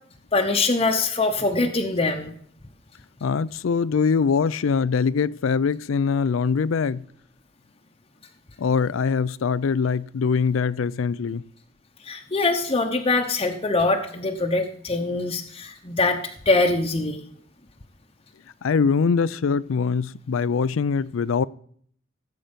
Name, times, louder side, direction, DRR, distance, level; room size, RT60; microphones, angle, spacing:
voice 1, 0.3-2.3 12.0-16.2 16.5-17.2, left 3 dB, 30° left, 0.8 m, -23 dB
voice 2, 3.2-7.1 8.6-11.4 18.6-21.4, left 5 dB, 85° left, 0.4 m, -23 dB
16.0 x 7.6 x 5.2 m
head